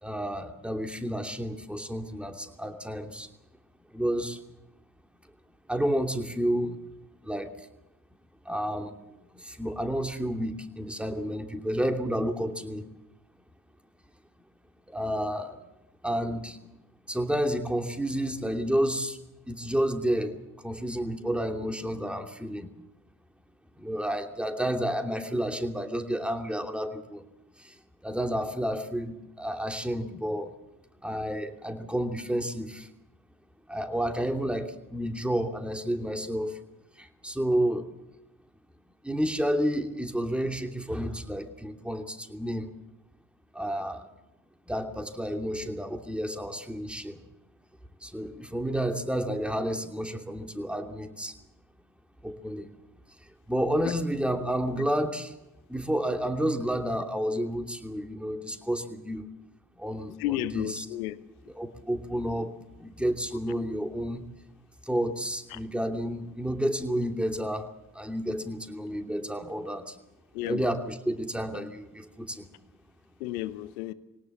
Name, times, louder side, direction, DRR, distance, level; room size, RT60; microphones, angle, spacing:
voice 1, 0.0-3.3 3.9-4.4 5.7-6.8 7.2-7.7 8.4-9.0 9.3-12.8 14.9-15.6 16.0-16.6 17.1-19.2 19.5-20.3 20.6-22.7 23.8-27.2 27.6-30.5 31.0-32.9 33.7-36.6 37.0-37.9 39.0-42.7 43.5-44.1 44.7-47.2 48.0-51.4 52.2-52.7 53.5-55.4 55.7-59.3 59.8-60.9 61.5-62.5 62.8-64.3 64.8-67.7 67.9-70.0 70.4-72.5, equal, 5° right, 4 dB, 2.8 m, -30 dB
voice 2, 60.2-61.2 65.5-65.6 70.3-70.7 73.2-73.9, left 14 dB, 80° left, 15 dB, 1.0 m, -32 dB
21.5 x 18.0 x 7.4 m, 0.93 s
hypercardioid pair, 45°, 43 cm